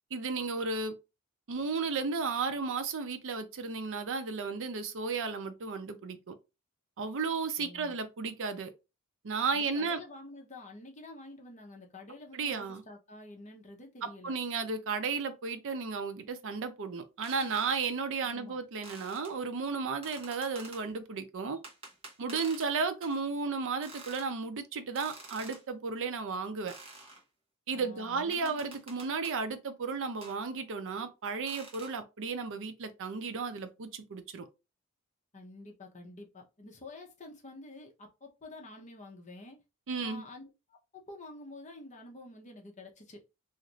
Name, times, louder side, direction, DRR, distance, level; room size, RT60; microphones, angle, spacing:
voice 1, 0.1-0.9 1.5-6.3 7.0-8.7 9.2-10.0 12.3-12.8 14.0-21.6 22.2-26.7 27.7-34.5 39.9-40.2, right 4 dB, 60° right, 0.5 m, -34 dB
voice 2, 7.6-7.9 9.5-14.3 18.2-18.6 27.7-28.7 35.3-39.6 40.0-43.2, left 2 dB, 35° left, 0.7 m, -49 dB
sound 1, 17.2-17.9 18.8-19.3 20.0-20.8 21.6-22.7 23.0-23.2 23.8-24.3 25.0-25.6 26.7-27.2 28.3-29.4 30.2-30.4 31.5-32.0, right 2 dB, 25° right, 0.9 m, -49 dB
2.5 x 2.5 x 3.0 m
head